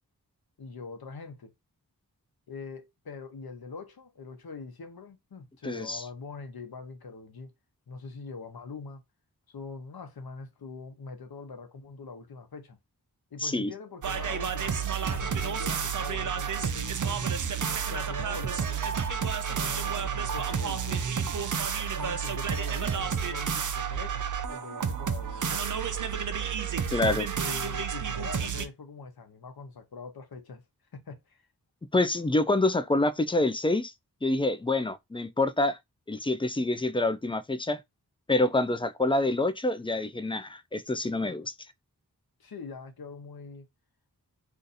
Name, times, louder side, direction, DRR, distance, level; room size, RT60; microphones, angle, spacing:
voice 1, 0.6-1.5 2.5-7.5 7.9-9.0 9.5-12.8 13.3-17.4 17.8-19.0 19.5-21.1 21.9-24.2 24.5-25.7 27.1-30.6 30.9-31.5 42.4-43.7, left 4 dB, 70° left, 0.8 m, -43 dB
voice 2, 5.6-6.0 13.4-13.7 26.9-27.3 31.9-33.9 34.2-35.8 36.1-37.8 38.3-41.5, left 2 dB, 15° left, 0.3 m, -27 dB
sound 1, 14.0-28.7, right 7 dB, 55° right, 0.5 m, -30 dB
2.6 x 2.4 x 3.9 m
wide cardioid pair, 60°, 38 cm